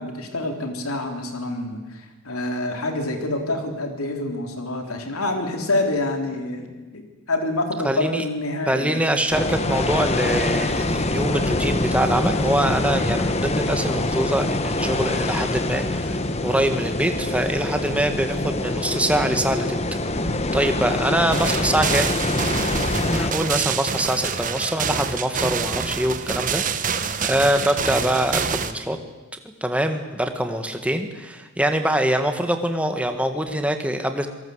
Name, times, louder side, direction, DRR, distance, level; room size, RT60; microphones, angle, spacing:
voice 1, 0.0-6.7 6.9-9.1, left 2 dB, 80° left, 5 dB, 3.7 m, -27 dB
voice 2, 7.8-8.2 8.7-16.2 16.4-19.8 20.5-22.1 23.1-29.0 29.6-34.3, right 1 dB, 5° right, 7 dB, 1.7 m, -24 dB
sound 1, 9.3-23.3, left 2 dB, 30° left, 1.2 m, -24 dB
sound 2, 21.3-28.7, right 6 dB, 35° right, 1.2 m, -26 dB
27.0 x 18.5 x 8.1 m, 1.2 s
head